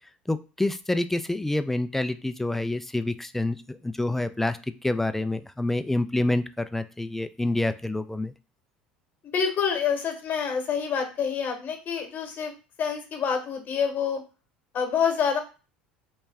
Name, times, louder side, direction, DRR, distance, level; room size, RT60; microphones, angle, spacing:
voice 1, 0.3-8.3, left 2 dB, 5° left, 11 dB, 0.4 m, -27 dB
voice 2, 9.2-12.5 12.8-14.2 14.7-15.4, left 7 dB, 40° left, 5 dB, 1.1 m, -27 dB
3.2 x 3.1 x 3.4 m, 0.32 s
hypercardioid pair, 70°, 5 cm